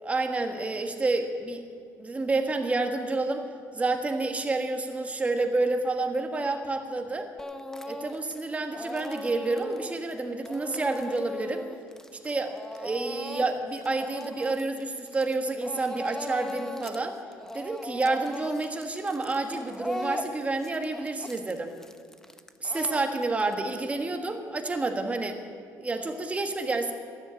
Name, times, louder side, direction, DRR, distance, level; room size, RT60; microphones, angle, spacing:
voice 1, 0.0-1.6 2.0-3.4 3.7-7.3 7.9-11.6 12.1-17.2 17.5-21.7 22.6-25.4 25.8-26.9, right 3 dB, 20° right, 5 dB, 1.6 m, -29 dB
Speech / Crying sobbing, 7.4-8.4 8.7-15.3 15.6-17.0 17.3-23.5, left 1 dB, 10° left, 0.8 m, -39 dB
13.0 x 10.5 x 9.0 m, 2.1 s
cardioid pair, 110°, 6 cm